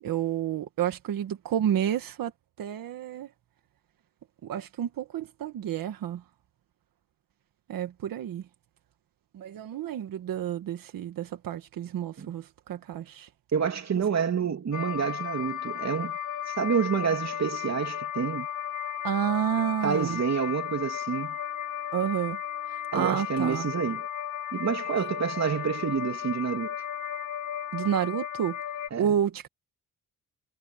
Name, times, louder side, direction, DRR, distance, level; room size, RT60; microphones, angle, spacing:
voice 1, 0.0-2.3 2.6-3.3 4.4-6.2 7.7-8.4 9.3-13.3 19.0-20.2 21.9-22.4 22.7-23.7 27.7-28.6 29.0-29.5, right 10 dB, 90° right, 1.6 m, -30 dB
voice 2, 13.5-16.2 16.5-18.5 19.8-21.4 22.9-24.1 24.5-26.7 28.9-29.1, right 6 dB, 50° right, 3.1 m, -28 dB
sound 1, 14.7-28.9, left 10 dB, 70° left, 5.3 m, -34 dB
cardioid pair, 95°, 33 cm